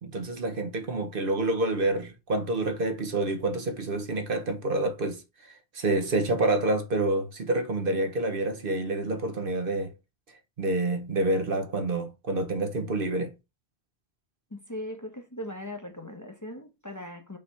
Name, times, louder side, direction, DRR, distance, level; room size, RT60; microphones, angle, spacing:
voice 1, 0.0-9.9 10.6-13.3, right 2 dB, 60° right, 1.1 m, -28 dB
voice 2, 14.5-17.4, left 1 dB, 20° left, 0.9 m, -39 dB
5.4 x 3.3 x 5.5 m
omnidirectional pair, 1.1 m